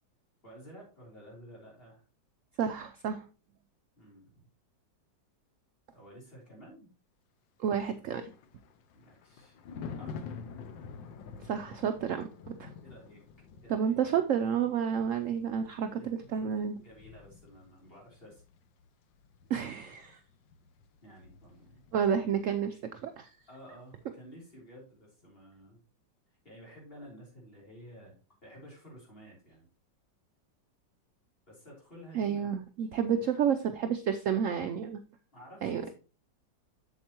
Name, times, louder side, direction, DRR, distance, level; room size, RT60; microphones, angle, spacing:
voice 1, 0.4-2.0 4.0-4.4 5.9-6.9 8.9-9.6 10.0-10.4 12.8-13.2 13.6-14.0 15.9-18.4 21.0-21.8 23.5-25.8 26.4-28.2 28.4-29.7 31.5-32.5 32.8-32.9 35.3-35.9, equal, 30° left, -3 dB, 3.6 m, -52 dB
voice 2, 2.6-3.2 7.6-8.3 11.4-12.7 13.7-16.8 19.5-20.2 21.9-23.3 32.1-35.0 35.6-35.8, right 8 dB, 75° right, 8 dB, 0.7 m, -30 dB
Thunder, 7.9-22.5 22.7-23.0, left 5 dB, 85° left, 1.5 m, -48 dB
7.9 x 7.3 x 2.9 m, 0.34 s
omnidirectional pair, 2.0 m